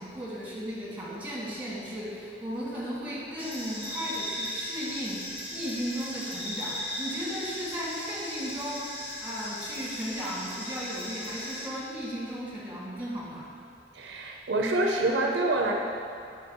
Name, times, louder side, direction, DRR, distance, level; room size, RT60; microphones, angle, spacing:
voice 1, 0.0-13.5, equal, 10° right, -6 dB, 1.4 m, -36 dB
sound 1, 3.4-11.7, left 1 dB, 35° left, 1.1 m, -37 dB
voice 2, 13.9-15.7, right 2 dB, 75° right, 1 dB, 0.5 m, -26 dB
5.2 x 5.1 x 4.2 m, 2.4 s
head